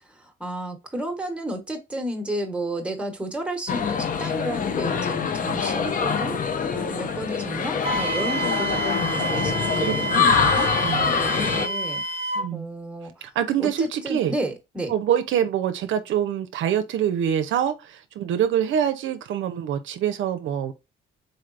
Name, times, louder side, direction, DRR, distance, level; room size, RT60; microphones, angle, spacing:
voice 1, 0.0-6.4 6.7-10.7 11.1-12.0 12.5-13.3 13.6-14.9, right 1 dB, 5° right, 1.1 m, -32 dB
sound 1, 3.7-11.7, left 6 dB, 45° left, 0.6 m, -24 dB
Wind instrument woodwind instrument, 7.8-12.5, right 2 dB, 30° right, 0.9 m, -28 dB
voice 2, 9.8-10.5 10.8-11.2 12.4-12.6 13.2-14.3 14.9-20.7, right 9 dB, 75° right, 0.5 m, -25 dB
4.0 x 3.2 x 2.4 m
cardioid pair, 90°, 20 cm